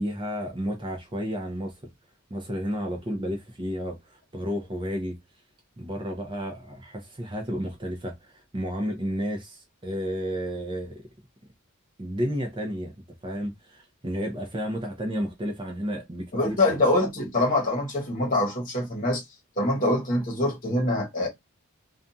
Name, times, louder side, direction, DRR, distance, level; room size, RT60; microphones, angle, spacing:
voice 1, 0.0-1.7 2.3-5.2 5.8-11.0 12.0-12.9 13.2-16.8, equal, 25° right, 0.6 m, -32 dB
voice 2, 16.3-19.2 19.6-21.3, left 1 dB, 40° left, 1.0 m, -24 dB
2.5 x 2.3 x 2.6 m
head